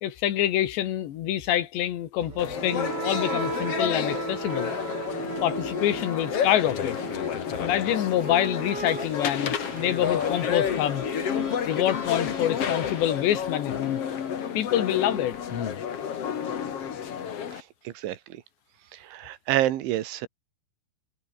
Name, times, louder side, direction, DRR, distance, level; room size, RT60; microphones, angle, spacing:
voice 1, 0.0-4.7 5.4-7.0 7.6-11.1 11.7-14.0 14.6-15.4, left 12 dB, 75° left, 3.9 m, -26 dB
sound 1, 2.2-14.1, right 4 dB, 25° right, 3.3 m, -37 dB
sound 2, 2.4-17.6, left 8 dB, 50° left, 2.0 m, -30 dB
voice 2, 17.5-18.4 18.9-20.3, right 13 dB, 85° right, 4.0 m, -29 dB
omnidirectional pair, 5.3 m